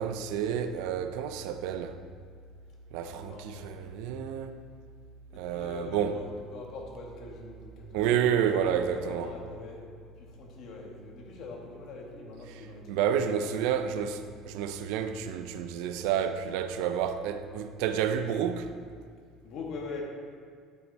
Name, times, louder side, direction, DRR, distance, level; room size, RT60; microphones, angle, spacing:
voice 1, 0.0-2.0 2.9-4.6 5.4-6.1 7.9-9.3 12.9-14.2 14.5-18.7, right 8 dB, 80° right, 0.6 m, -29 dB
voice 2, 3.0-4.0 5.3-8.4 8.7-13.8 19.4-20.0, left 3 dB, 60° left, 2.0 m, -44 dB
12.0 x 6.4 x 4.2 m
cardioid pair, 125°, 0 cm